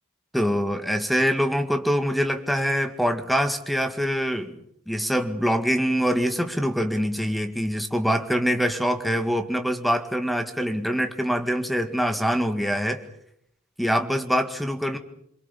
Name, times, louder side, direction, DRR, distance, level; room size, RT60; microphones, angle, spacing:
voice 1, 0.3-4.6 4.9-13.1 13.8-15.0, equal, ahead, 7 dB, 1.9 m, -24 dB
26.5 x 23.5 x 7.1 m, 0.72 s
head